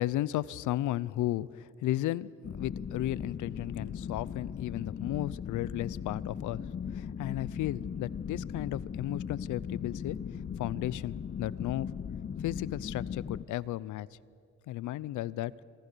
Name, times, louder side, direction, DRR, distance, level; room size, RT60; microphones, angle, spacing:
voice 1, 0.0-2.3 2.6-6.6 6.9-10.2 10.6-11.9 12.4-14.1 14.7-15.5, left 14 dB, 80° left, 21 dB, 0.7 m, -34 dB
sound 1, 2.4-13.4, left 7 dB, 35° left, 0.8 m, -38 dB
27.0 x 23.5 x 6.9 m, 2.3 s
cardioid pair, 90°, 30 cm